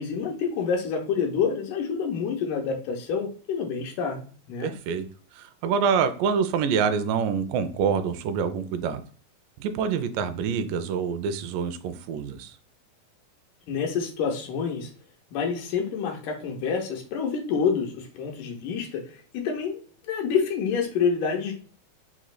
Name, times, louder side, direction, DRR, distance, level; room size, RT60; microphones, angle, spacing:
voice 1, 0.0-4.2 4.5-4.7 13.7-14.9 15.3-19.0 19.3-19.8 20.1-21.5, left 6 dB, 75° left, 1 dB, 2.2 m, -27 dB
voice 2, 4.6-5.1 5.3-9.0 9.6-12.6, right 6 dB, 80° right, 9 dB, 2.0 m, -26 dB
5.8 x 3.1 x 2.2 m, 0.42 s
omnidirectional pair, 4.2 m